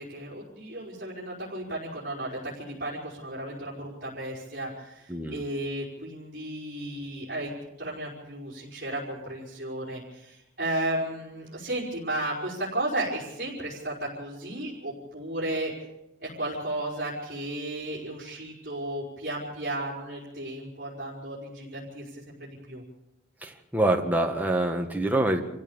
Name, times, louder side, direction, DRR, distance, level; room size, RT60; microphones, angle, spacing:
voice 1, 0.0-15.7 16.2-22.8, right 1 dB, 45° right, -7 dB, 5.1 m, -34 dB
voice 2, 5.1-5.4 23.4-25.4, right 1 dB, 10° right, 2 dB, 1.7 m, -25 dB
26.5 x 15.5 x 7.3 m, 0.90 s
head